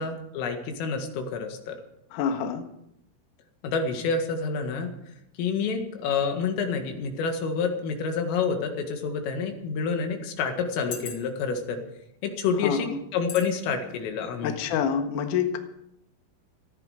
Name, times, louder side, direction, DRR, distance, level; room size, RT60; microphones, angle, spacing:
voice 1, 0.0-1.8 3.6-4.9 5.4-11.8 12.2-14.6, left 5 dB, 85° left, 4 dB, 4.6 m, -28 dB
voice 2, 2.1-2.6 12.6-12.9 14.4-15.6, left 7 dB, 65° left, 5 dB, 2.1 m, -27 dB
sound 1, 10.9-11.5 12.2-12.4 13.3-13.5 13.9-14.1, left 7 dB, 50° left, 2.6 m, -38 dB
18.5 x 14.0 x 5.0 m, 0.78 s
omnidirectional pair, 5.7 m